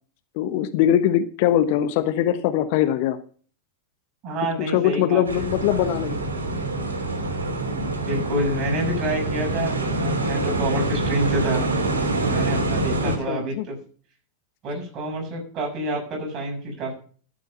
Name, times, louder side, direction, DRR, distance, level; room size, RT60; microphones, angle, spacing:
voice 1, 0.4-3.2 4.7-6.2 13.0-13.7, left 11 dB, 45° left, 11 dB, 1.1 m, -22 dB
voice 2, 4.2-5.4 8.0-11.6 12.2-13.8 14.6-16.9, right 1 dB, 30° right, 1 dB, 6.7 m, -28 dB
sound 1, 5.2-13.2, right 2 dB, 70° right, 2.7 m, -25 dB
13.0 x 7.8 x 5.4 m, 0.43 s
figure-of-eight pair, 90°, 0 cm